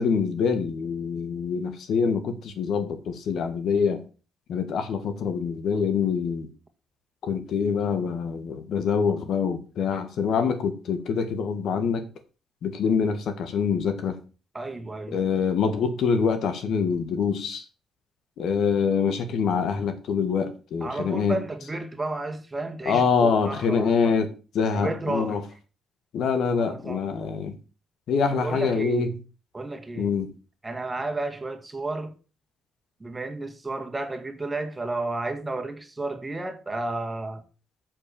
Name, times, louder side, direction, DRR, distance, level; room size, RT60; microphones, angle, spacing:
voice 1, 0.0-4.0 4.5-6.5 7.2-12.0 12.6-14.2 15.1-17.6 18.4-21.4 22.9-24.3 24.6-25.4 26.1-27.5 28.1-29.1 30.0-30.3, left 6 dB, 70° left, 1.6 m, -25 dB
voice 2, 14.5-15.3 20.8-24.2 24.7-25.6 26.5-27.1 28.3-29.1 29.5-30.1 30.6-32.1 33.0-37.4, right 2 dB, 20° right, 1.8 m, -32 dB
7.5 x 6.2 x 7.0 m
cardioid pair, 90°, 0 cm